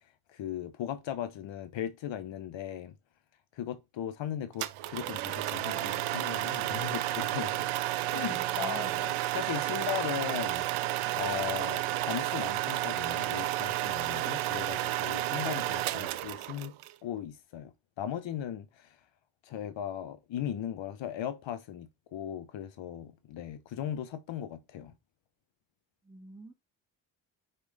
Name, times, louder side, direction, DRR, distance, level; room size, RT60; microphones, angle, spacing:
voice 1, 0.3-2.9 3.5-7.6 8.1-16.7 17.0-19.0 19.4-24.9, left 10 dB, 65° left, 1.0 m, -38 dB
sound 1, 4.6-16.9, right 15 dB, 75° right, 0.8 m, -31 dB
voice 2, 8.3-9.0 26.1-26.5, right 2 dB, 10° right, 2.7 m, -47 dB
5.0 x 4.3 x 5.2 m
supercardioid pair, 55°, 49 cm